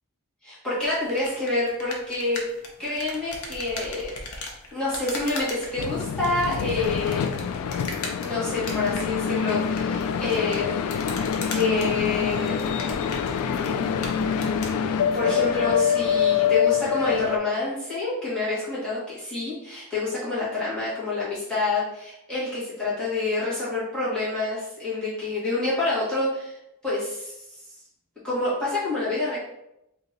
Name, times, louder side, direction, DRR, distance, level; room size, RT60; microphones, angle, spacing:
voice 1, 0.4-2.4 2.8-4.2 4.7-7.3 8.2-10.9 11.5-12.6 13.8-26.6 26.8-27.3 28.2-29.4, left 3 dB, 5° left, -11 dB, 1.5 m, -27 dB
sound 1, 0.8-14.8, left 2 dB, 70° left, 0.7 m, -39 dB
sound 2, 5.8-17.4, left 7 dB, 90° left, 0.3 m, -25 dB
2.9 x 2.7 x 3.9 m, 0.85 s
head